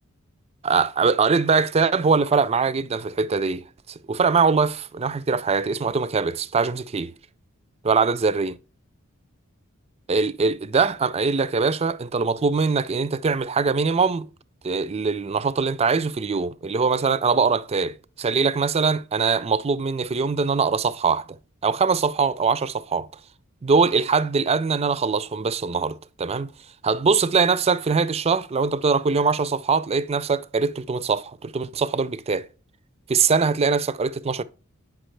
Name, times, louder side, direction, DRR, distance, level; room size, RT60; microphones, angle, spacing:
voice 1, 0.6-3.6 4.1-7.1 7.8-8.6 10.1-14.3 14.6-21.2 21.6-23.1 23.6-26.5 26.8-32.5 33.1-34.4, right 5 dB, 30° right, 0.4 m, -22 dB
8.8 x 5.9 x 3.3 m
head